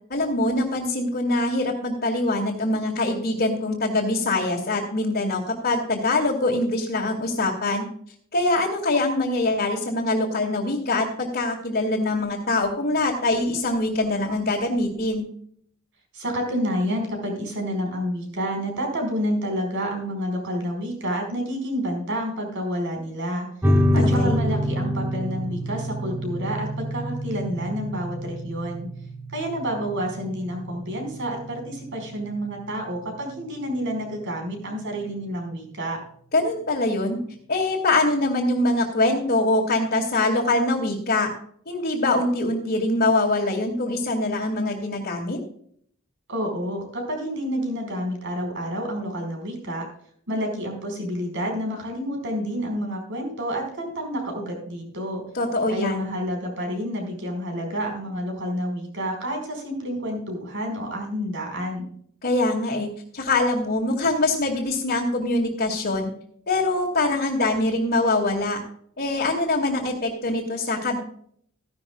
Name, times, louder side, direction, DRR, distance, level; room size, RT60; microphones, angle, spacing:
voice 1, 0.1-7.8 8.3-15.3 23.7-24.3 36.3-37.2 37.5-41.3 41.7-45.4 55.3-56.1 62.2-66.1 66.5-68.6 69.0-71.0, left 2 dB, 50° left, -4 dB, 2.3 m, -23 dB
voice 2, 16.1-23.5 23.9-28.9 29.3-36.0 46.3-49.8 50.3-55.2 55.7-61.9, equal, 60° right, 3 dB, 5.0 m, -29 dB
sound 1, 23.6-34.6, equal, 10° right, 0.9 m, -27 dB
15.5 x 11.5 x 2.3 m, 0.63 s
head